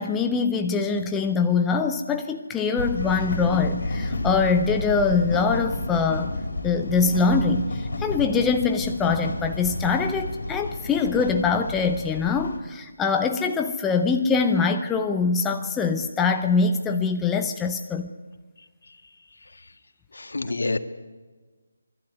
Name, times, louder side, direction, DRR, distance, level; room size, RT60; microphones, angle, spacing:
voice 1, 0.0-6.3 6.6-18.1, left 4 dB, 5° left, 5 dB, 0.6 m, -23 dB
sound 1, 2.8-12.6, left 2 dB, 60° left, 4.3 m, -31 dB
voice 2, 20.1-20.8, left 2 dB, 90° left, 10 dB, 1.6 m, -27 dB
23.5 x 12.0 x 9.7 m, 1.4 s
hypercardioid pair, 175°, 0 cm